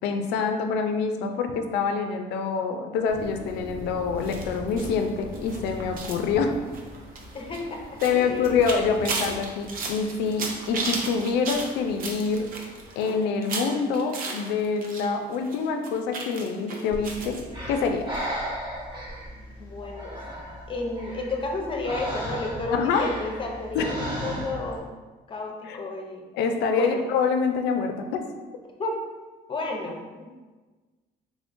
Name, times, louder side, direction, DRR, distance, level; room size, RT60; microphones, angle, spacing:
voice 1, 0.0-6.5 8.0-12.5 13.0-17.4 17.7-18.1 22.7-23.1 23.7-23.9 25.7-25.8 26.3-28.2, left 5 dB, 90° left, 6 dB, 0.4 m, -26 dB
sound 1, 3.1-12.9, equal, 80° right, 1.5 m, -42 dB
sound 2, 4.2-15.1 15.3-17.4 17.7-17.9 18.1-18.2, right 3 dB, 55° right, 0.7 m, -35 dB
voice 2, 7.3-8.5 19.6-20.2 20.7-24.9 25.3-26.3 26.7-27.0 28.8-29.0 29.5-30.4, left 2 dB, 30° left, 1 dB, 0.7 m, -32 dB
Breathing, 16.9-24.8, equal, 25° right, 1.0 m, -35 dB
3.6 x 3.6 x 2.5 m, 1.3 s
cardioid pair, 110°, 17 cm